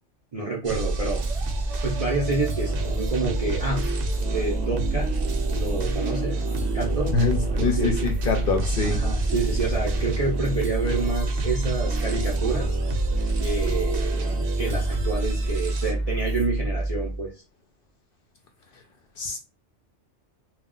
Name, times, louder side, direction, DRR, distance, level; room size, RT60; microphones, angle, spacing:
voice 1, 0.3-1.2 1.8-3.9 4.3-5.2 5.5-6.5 6.7-7.2 7.5-7.9 8.8-12.8 13.4-17.3, right 3 dB, 45° right, -3 dB, 0.5 m, -28 dB
sound 1, 0.6-15.9, right 2 dB, 70° right, 0.9 m, -30 dB
sound 2, 0.7-17.3, right 2 dB, ahead, 0.7 m, -28 dB
voice 2, 7.1-9.0 19.2-19.4, left 4 dB, 60° left, 4 dB, 0.6 m, -25 dB
2.3 x 2.1 x 3.7 m, 0.31 s
omnidirectional pair, 1.3 m